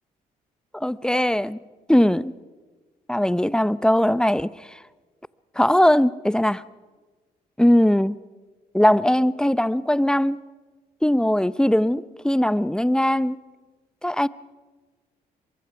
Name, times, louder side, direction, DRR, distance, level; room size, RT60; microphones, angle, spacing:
voice 1, 0.7-1.6 1.9-2.3 3.1-4.8 5.6-6.6 7.6-8.1 8.7-10.4 11.0-13.4 14.0-14.3, left 1 dB, 5° left, 0.6 m, -20 dB
23.5 x 22.5 x 5.9 m
hypercardioid pair, 50°, 20 cm